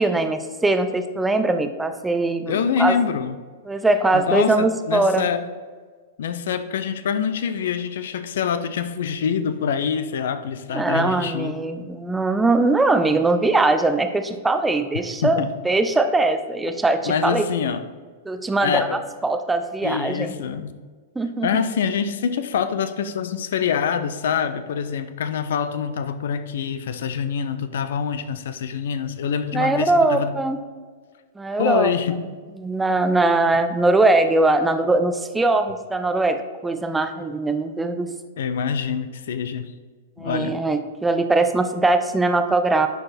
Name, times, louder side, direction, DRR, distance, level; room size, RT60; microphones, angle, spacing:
voice 1, 0.0-3.0 3.7-5.3 10.7-17.5 18.3-20.3 21.2-21.5 29.5-30.6 31.4-31.9 32.6-38.1 40.2-42.9, right 2 dB, 10° right, 8 dB, 0.5 m, -21 dB
voice 2, 2.5-3.3 4.1-5.5 6.2-11.6 15.2-15.5 17.0-17.8 18.6-19.0 19.8-20.7 21.4-30.4 31.6-32.2 38.4-39.7 40.2-40.6, left 7 dB, 60° left, 12 dB, 0.5 m, -25 dB
10.5 x 4.7 x 4.3 m, 1.5 s
figure-of-eight pair, 100°, 0 cm